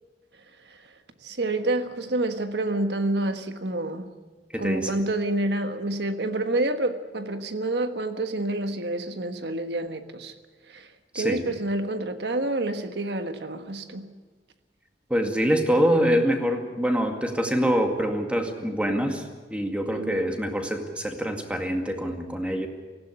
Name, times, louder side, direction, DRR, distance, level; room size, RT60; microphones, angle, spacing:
voice 1, 1.2-4.1 4.6-10.3 10.7-10.9 11.1-14.1 15.2-15.3 19.9-20.3, right 2 dB, 70° right, 1.4 m, -28 dB
voice 2, 4.5-4.9 11.1-11.4 15.1-19.2 19.5-22.7, equal, 5° right, 2.1 m, -25 dB
18.0 x 16.0 x 9.8 m
head